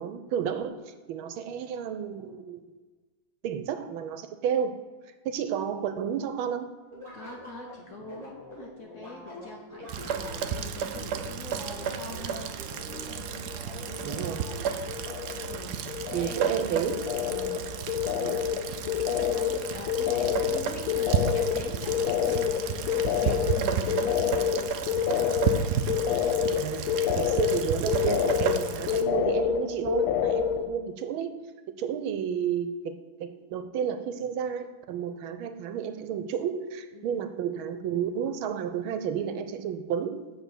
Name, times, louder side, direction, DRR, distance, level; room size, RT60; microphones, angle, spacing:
voice 1, 0.0-2.6 3.4-4.7 5.2-6.7 14.0-14.4 16.1-17.1 18.2-18.4 26.6-31.4 31.7-32.9 33.2-40.2, right 8 dB, 85° right, 9 dB, 1.5 m, -31 dB
sound 1, 6.9-15.0, left 1 dB, 15° right, 2.8 m, -45 dB
voice 2, 7.1-12.6 15.4-16.9 17.2-17.7 19.1-24.8 30.3-30.7 36.9-37.3, left 2 dB, 55° left, 1 dB, 0.9 m, -43 dB
Rain, 9.9-29.0, right 7 dB, 70° right, 1.0 m, -32 dB
sound 2, 13.0-13.6 13.9-14.6 14.9-30.7, left 9 dB, 80° left, 1.5 m, -28 dB
8.2 x 4.3 x 7.0 m, 1.3 s
omnidirectional pair, 2.3 m